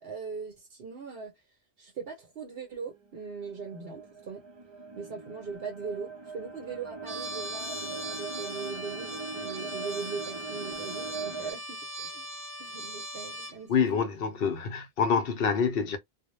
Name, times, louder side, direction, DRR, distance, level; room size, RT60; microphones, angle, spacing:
voice 1, 0.0-1.3 1.8-4.4 4.9-12.3 12.6-14.1, right 5 dB, 65° right, 0.9 m, -40 dB
sound 1, 2.8-11.5, right 4 dB, 30° right, 0.6 m, -41 dB
Trumpet, 7.0-13.6, equal, 5° left, 1.0 m, -39 dB
voice 2, 13.7-16.0, left 6 dB, 65° left, 0.7 m, -26 dB
2.1 x 2.1 x 2.9 m
omnidirectional pair, 1.1 m